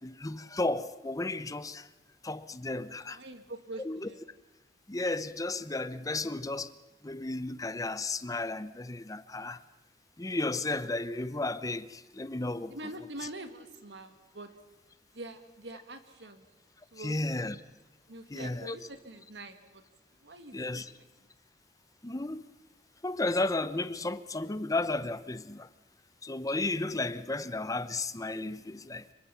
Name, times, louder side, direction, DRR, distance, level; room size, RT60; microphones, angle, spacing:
voice 1, 0.0-1.9 2.2-3.2 3.8-4.1 4.9-6.7 7.0-9.6 10.2-12.7 17.0-17.6 18.3-18.8 20.5-20.9 22.0-22.4 23.0-25.7 26.2-29.1, left 2 dB, 20° left, 0.8 m, -33 dB
voice 2, 3.0-4.2 12.7-14.5 15.1-16.4 16.9-17.5 18.1-19.8 20.2-21.1, right 2 dB, 75° right, 2.0 m, -45 dB
25.5 x 23.5 x 5.8 m
head